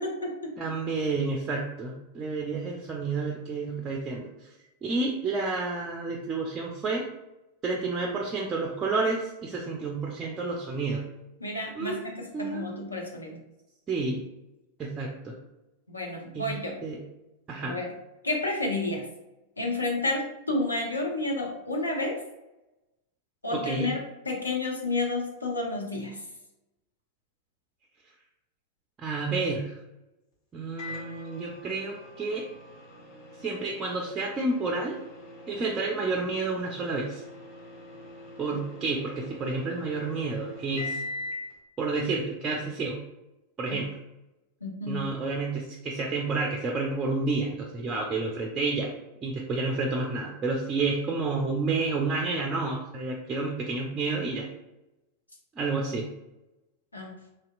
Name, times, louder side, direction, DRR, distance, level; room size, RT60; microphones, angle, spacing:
voice 1, 0.0-0.5 11.4-13.4 15.9-16.7 17.6-17.9 18.2-19.1 19.6-22.2 23.4-24.0 24.3-26.2 43.7-43.8 44.6-45.0 56.9-57.1, left 2 dB, 80° left, 0 dB, 0.6 m, -30 dB
voice 2, 0.6-4.5 4.8-7.1 7.6-11.0 11.8-12.0 12.3-12.8 13.9-14.2 14.8-15.4 16.3-16.5 16.8-17.0 17.5-17.8 23.5-23.9 29.0-29.8 30.5-32.5 33.4-35.0 35.5-37.2 38.4-41.0 41.8-43.0 43.6-43.9 44.9-48.9 49.2-54.5 55.6-56.1, right 3 dB, 25° right, 0 dB, 0.4 m, -30 dB
Microwave oven, 30.8-41.5, left 2 dB, 50° left, 1.0 m, -42 dB
3.2 x 2.8 x 2.3 m, 0.96 s
figure-of-eight pair, 90°, 0 cm